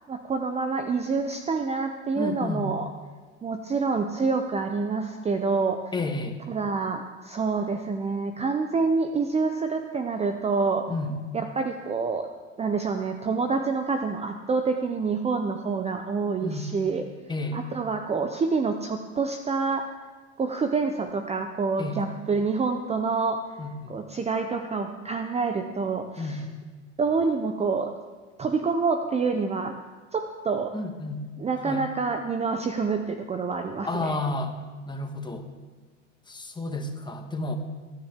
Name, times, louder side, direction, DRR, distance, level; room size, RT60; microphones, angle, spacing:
voice 1, 0.1-2.9 3.4-5.9 6.5-10.9 11.3-12.3 12.6-17.0 17.5-19.9 20.4-23.6 23.9-26.4 27.0-27.9 28.4-29.8 30.1-30.7 31.4-34.2, right 4 dB, 15° right, 6 dB, 0.7 m, -27 dB
voice 2, 2.1-2.8 5.9-6.4 10.9-11.4 16.4-16.7 17.3-17.6 21.8-22.0 23.6-23.9 26.2-26.5 30.7-31.3 31.6-31.8 33.8-34.5 34.9-35.5 36.3-37.6, left 2 dB, 10° left, 5 dB, 1.5 m, -31 dB
21.0 x 9.9 x 3.7 m, 1.3 s
hypercardioid pair, 100°, 37 cm